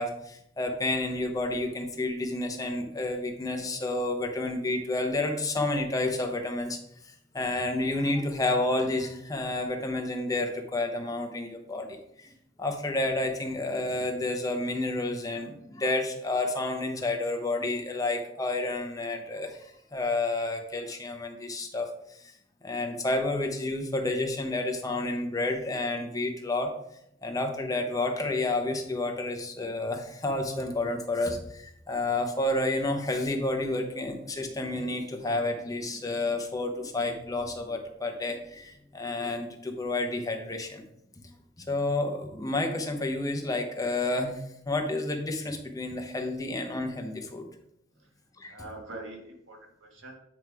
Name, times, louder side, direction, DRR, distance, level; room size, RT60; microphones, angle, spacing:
voice 1, 0.0-6.8 7.3-12.3 12.6-22.3 22.6-26.7 27.2-40.8 41.7-44.4 44.7-47.5 48.4-48.5, left 2 dB, 20° left, 3 dB, 0.9 m, -30 dB
voice 2, 48.5-50.2, right 2 dB, 85° right, 1 dB, 1.7 m, -44 dB
8.7 x 3.1 x 4.8 m, 0.77 s
head